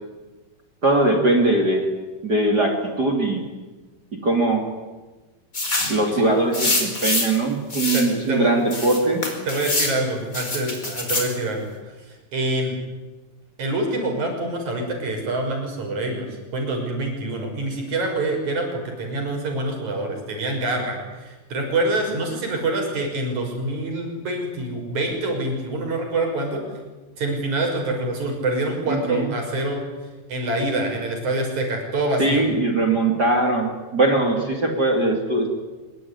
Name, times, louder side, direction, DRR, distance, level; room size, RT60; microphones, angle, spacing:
voice 1, 0.8-1.8 2.2-3.4 4.1-4.7 5.9-9.2 28.9-29.3 32.2-35.5, right 2 dB, 25° right, 3 dB, 3.1 m, -21 dB
sound 1, 5.5-6.0 6.5-7.4 7.7-8.1 8.7-10.0 10.3-11.3, left 2 dB, 20° left, 4.7 m, -25 dB
voice 2, 7.9-8.5 9.5-12.0 12.3-12.8 13.6-26.6 27.2-29.8 30.3-32.4, right 2 dB, 45° right, 3 dB, 7.3 m, -26 dB
25.0 x 23.0 x 9.9 m, 1.2 s
omnidirectional pair, 4.5 m